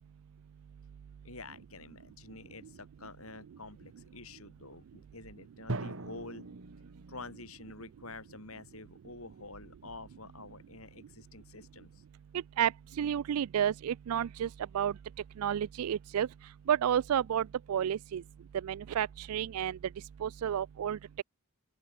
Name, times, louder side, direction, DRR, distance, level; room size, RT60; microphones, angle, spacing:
voice 1, 1.2-6.5 7.1-12.0, left 3 dB, 70° left, 6.8 m, -48 dB
Drum, 5.7-7.6, right 2 dB, 60° right, 1.5 m, -40 dB
voice 2, 13.0-14.5 14.7-14.9 15.4-16.3 16.7-18.2 18.6-19.8 20.2-21.0, right 9 dB, 85° right, 0.3 m, -30 dB
open air
head